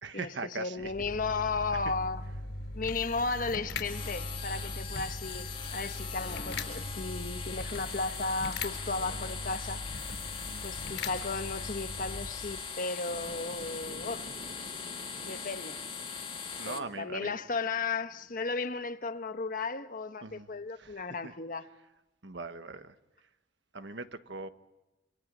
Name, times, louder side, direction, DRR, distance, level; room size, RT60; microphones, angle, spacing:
voice 1, 0.0-0.9 1.3-1.4 1.7-1.9 2.3-2.4 10.4-10.7 16.6-17.4 20.2-21.3 21.6-21.9 22.2-23.0 23.2-23.3 23.7-24.5, right 3 dB, 75° right, 1.3 m, -41 dB
voice 2, 0.5-2.2 2.7-9.8 10.6-14.3 15.2-15.8 16.7-21.7, left 3 dB, 50° left, 1.1 m, -35 dB
sound 1, 0.8-12.7, left 2 dB, 80° left, 4.5 m, -40 dB
sound 2, 3.8-16.8, left 6 dB, 30° left, 1.6 m, -41 dB
sound 3, 13.1-19.2, right 1 dB, 40° right, 0.9 m, -51 dB
27.5 x 25.5 x 5.4 m
head